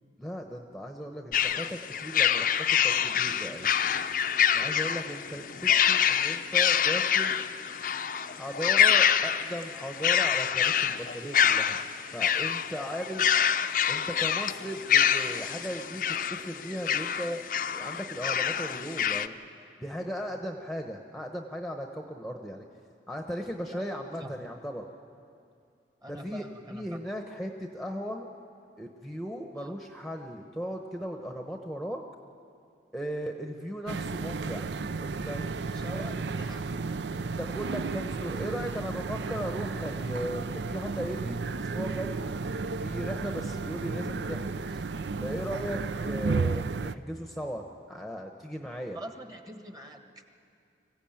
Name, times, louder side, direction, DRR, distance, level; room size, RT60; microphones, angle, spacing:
voice 1, 0.2-3.7 4.5-7.4 8.3-11.8 12.1-13.3 13.9-17.4 17.7-19.4 19.8-22.7 23.1-24.8 26.1-26.4 26.7-28.3 28.8-32.0 32.9-34.7 35.0-35.6 35.9-36.0 37.4-42.1 42.8-44.8 45.2-49.0, equal, ahead, 3 dB, 0.9 m, -37 dB
sound 1, 1.3-19.3, left 9 dB, 50° left, 0.6 m, -26 dB
voice 2, 23.7-24.3 26.0-27.0 29.5-29.7 35.7-36.8 48.9-50.2, right 1 dB, 20° right, 5 dB, 1.4 m, -44 dB
sound 2, 33.9-46.9, right 4 dB, 75° right, 0.5 m, -33 dB
25.0 x 15.5 x 8.8 m, 2.4 s
head